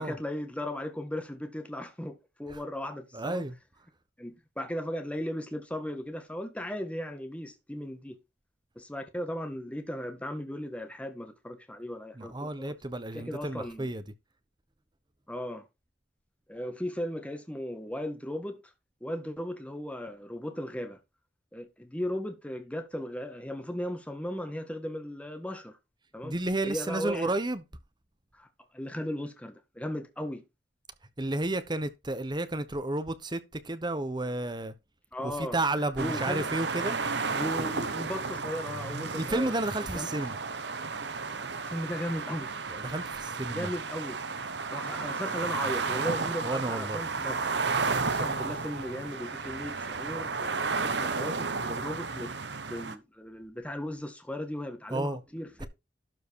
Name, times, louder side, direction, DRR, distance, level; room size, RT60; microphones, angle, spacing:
voice 1, 0.0-3.4 4.2-8.2 8.8-12.7 13.1-13.9 15.3-15.6 16.5-18.6 19.0-21.0 21.5-25.8 26.1-26.3 26.7-27.3 28.3-28.5 28.7-30.4 35.1-35.6 36.0-36.5 37.4-39.5 39.9-40.1 41.6-42.5 43.5-44.2 44.7-47.4 47.9-55.7, equal, 5° left, 1.6 m, -36 dB
voice 2, 3.1-3.5 12.2-14.0 26.2-27.6 31.2-34.7 35.4-37.0 39.2-40.3 42.7-43.7 46.4-47.0 54.9-55.2, right 2 dB, 25° right, 1.1 m, -31 dB
sound 1, 36.0-53.0, right 4 dB, 70° right, 1.1 m, -33 dB
12.0 x 4.8 x 4.7 m
head